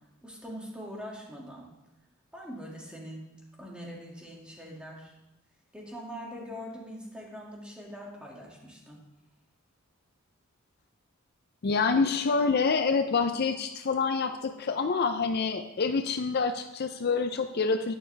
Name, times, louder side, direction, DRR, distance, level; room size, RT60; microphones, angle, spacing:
voice 1, 0.2-1.7 2.3-3.3 3.6-5.2 5.7-9.0, equal, 5° right, -3 dB, 2.1 m, -42 dB
voice 2, 11.6-17.9, left 4 dB, 50° left, 8 dB, 0.5 m, -27 dB
11.0 x 9.8 x 3.3 m, 0.91 s
head